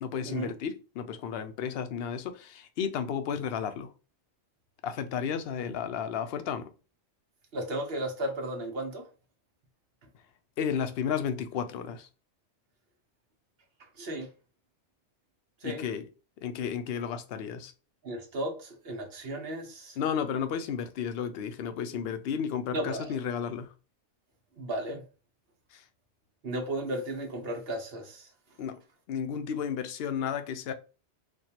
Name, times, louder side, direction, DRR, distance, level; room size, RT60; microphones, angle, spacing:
voice 1, 0.0-3.9 4.8-6.7 10.6-12.1 15.6-16.1 16.4-17.7 20.0-23.7 25.7-25.8 28.6-28.8 29.1-30.7, left 7 dB, 65° left, 0.8 m, -33 dB
voice 2, 7.5-9.1 14.0-14.3 15.6-15.8 18.0-20.0 21.9-22.0 22.7-23.2 24.6-25.0 26.4-28.3, right 1 dB, 65° right, 1.1 m, -34 dB
4.3 x 2.3 x 2.8 m
omnidirectional pair, 1.1 m